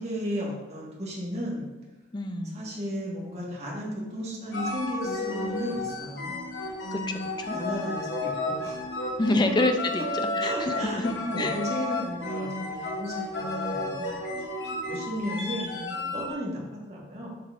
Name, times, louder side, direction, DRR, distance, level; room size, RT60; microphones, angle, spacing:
voice 1, 0.0-1.7 2.5-6.5 6.8-6.9 7.5-8.8 10.4-17.3, equal, 35° right, -4 dB, 1.6 m, -34 dB
voice 2, 2.1-2.6 6.9-7.0 7.4-7.6 9.2-10.0 10.3-11.1 11.4-11.6, left 2 dB, 25° left, 6 dB, 0.4 m, -26 dB
sound 1, 4.5-16.3, left 2 dB, 70° left, 1.1 m, -32 dB
7.6 x 5.5 x 2.6 m, 1.2 s
head